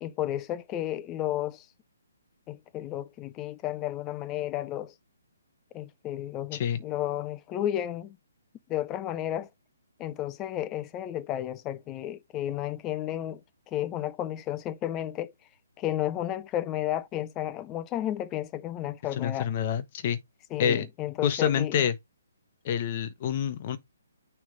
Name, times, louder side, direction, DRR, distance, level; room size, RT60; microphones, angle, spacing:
voice 1, 0.0-1.7 2.5-4.9 5.7-8.2 8.7-9.5 10.0-13.4 13.7-15.3 15.8-19.5 20.5-21.9, left 12 dB, 20° left, 0.6 m, -32 dB
voice 2, 19.2-20.2 20.6-20.8 21.2-21.9 22.6-23.8, left 8 dB, 40° left, 1.0 m, -27 dB
6.4 x 3.3 x 5.1 m
hypercardioid pair, 145°, 0 cm